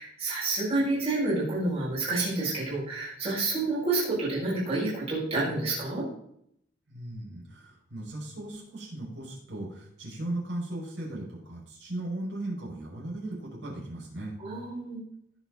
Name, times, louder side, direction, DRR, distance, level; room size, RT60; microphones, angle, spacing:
voice 1, 0.0-6.0 14.4-15.0, right 2 dB, 35° right, -8 dB, 6.5 m, -29 dB
voice 2, 6.9-14.4, right 1 dB, 65° right, -4 dB, 6.3 m, -37 dB
19.5 x 7.3 x 4.1 m, 0.70 s
head